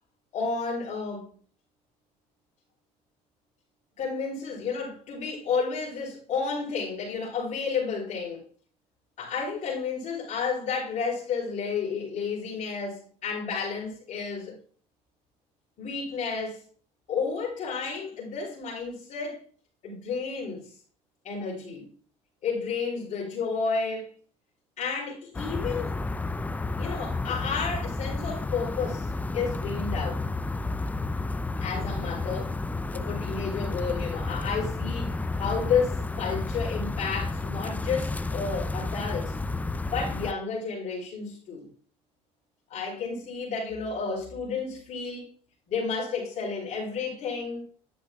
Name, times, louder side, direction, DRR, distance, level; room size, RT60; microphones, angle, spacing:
voice 1, 0.3-1.3 4.0-8.4 9.2-14.6 15.8-16.6 17.1-19.4 19.8-20.8 21.2-21.9 22.4-24.1 24.8-26.0 26.8-30.3 31.6-32.6 32.9-39.3 39.9-41.7 42.7-45.3 45.7-47.6, left 5 dB, 55° left, 3.6 m, -31 dB
sound 1, 25.3-40.3, left 3 dB, 10° left, 0.4 m, -31 dB
10.0 x 7.6 x 2.3 m
cardioid pair, 100°, 14 cm